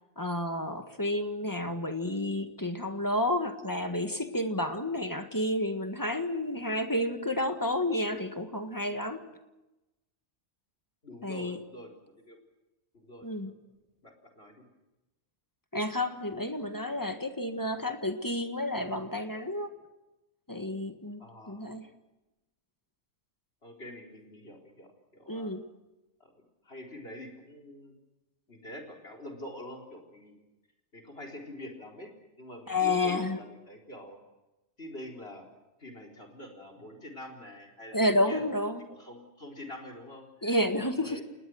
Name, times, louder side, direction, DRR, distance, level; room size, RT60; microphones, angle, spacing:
voice 1, 0.2-9.3 11.2-11.6 13.2-13.5 15.7-19.7 20.5-21.9 25.3-25.6 32.7-33.4 37.9-38.8 40.4-41.2, left 1 dB, 15° left, 7 dB, 1.5 m, -30 dB
voice 2, 11.0-12.4 12.9-13.5 14.0-14.6 21.2-21.6 23.6-25.5 26.2-26.3 26.6-28.0 28.5-30.4 30.9-34.2 34.8-35.4 35.8-38.5 38.9-41.2, left 1 dB, 50° left, 4 dB, 4.4 m, -45 dB
28.5 x 20.0 x 6.4 m, 1.0 s
omnidirectional pair, 1.4 m